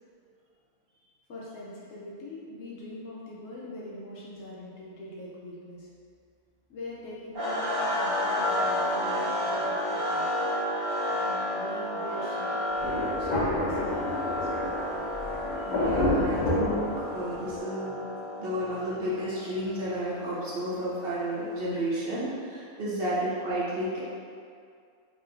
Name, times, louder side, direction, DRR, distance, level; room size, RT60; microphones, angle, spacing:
voice 1, 1.3-5.9 6.7-10.3 11.0-14.1 14.4-15.1 22.9-23.0, left 1 dB, 65° left, -6 dB, 1.0 m, -42 dB
sound 1, 7.3-21.4, left 1 dB, 85° right, 1.8 m, -32 dB
Thunder, 12.8-17.6, left 1 dB, 40° left, 0.7 m, -29 dB
voice 2, 15.6-18.0 18.4-24.0, equal, 45° right, -8 dB, 1.1 m, -32 dB
4.8 x 2.8 x 2.6 m, 2.2 s
omnidirectional pair, 1.5 m